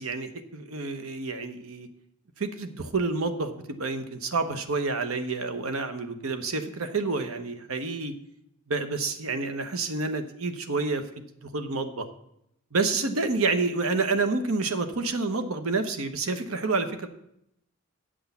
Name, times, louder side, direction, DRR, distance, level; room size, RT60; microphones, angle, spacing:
voice 1, 0.0-1.9 2.4-8.1 8.7-11.0 11.4-12.1 12.7-17.1, right 3 dB, 75° right, 9 dB, 1.0 m, -29 dB
9.2 x 6.3 x 7.0 m, 0.78 s
head